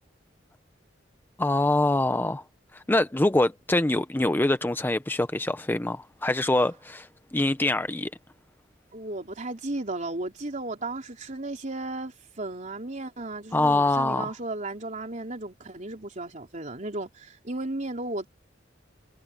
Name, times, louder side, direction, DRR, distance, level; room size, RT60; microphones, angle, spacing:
voice 1, 1.4-2.4 2.7-8.1 13.5-14.3, left 2 dB, 10° left, 0.5 m, -24 dB
voice 2, 8.9-18.3, right 2 dB, 40° right, 3.5 m, -34 dB
head